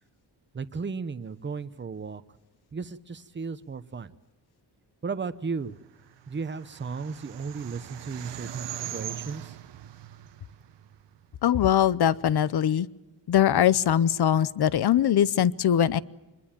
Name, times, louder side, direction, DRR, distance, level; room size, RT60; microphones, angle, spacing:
voice 1, 0.5-2.2 2.7-4.1 5.0-5.8 6.3-9.6, right 5 dB, 25° right, 12 dB, 0.9 m, -35 dB
sound 1, 6.0-11.4, right 11 dB, 85° right, 1.1 m, -41 dB
voice 2, 11.4-12.9 13.3-16.0, left 10 dB, 65° left, 19 dB, 0.8 m, -22 dB
26.0 x 22.0 x 7.4 m, 1.1 s
wide cardioid pair, 140°, 41 cm